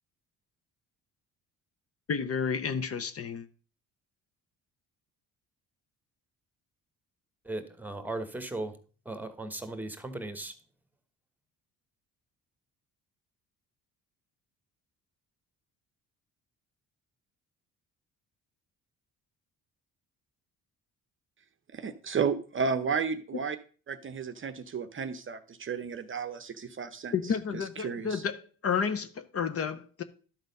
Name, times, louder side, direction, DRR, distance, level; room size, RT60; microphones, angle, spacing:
voice 1, 2.1-3.5 27.1-30.0, left 6 dB, 40° left, 0.8 m, -31 dB
voice 2, 7.4-8.7 9.0-10.5, right 2 dB, 5° right, 1.2 m, -37 dB
voice 3, 21.7-23.6 23.9-27.1 27.5-28.2, right 6 dB, 35° right, 0.7 m, -33 dB
12.0 x 4.0 x 5.3 m
cardioid pair, 95°, 35 cm